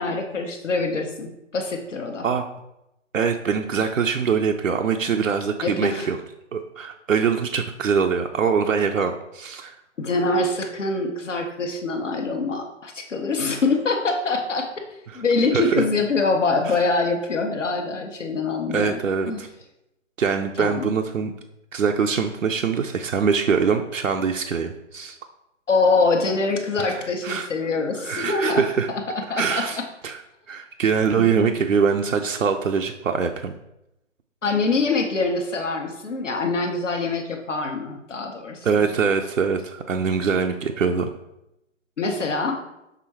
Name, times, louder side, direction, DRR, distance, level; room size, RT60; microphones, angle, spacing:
voice 1, 0.0-2.3 5.6-6.1 10.0-19.0 19.3-19.4 20.6-20.9 25.7-28.6 28.9-29.8 31.2-31.6 34.4-38.7 42.0-42.6, left 3 dB, 70° left, 3 dB, 1.0 m, -24 dB
voice 2, 3.1-6.2 6.5-9.8 15.1-15.2 15.5-15.8 16.7-16.8 18.7-19.5 20.2-21.3 21.7-25.2 26.9-27.5 28.0-28.9 29.4-29.8 30.0-30.2 30.5-33.5 38.6-41.1, right 6 dB, 80° right, 4 dB, 0.6 m, -23 dB
6.0 x 3.7 x 4.4 m, 0.88 s
figure-of-eight pair, 140°, 38 cm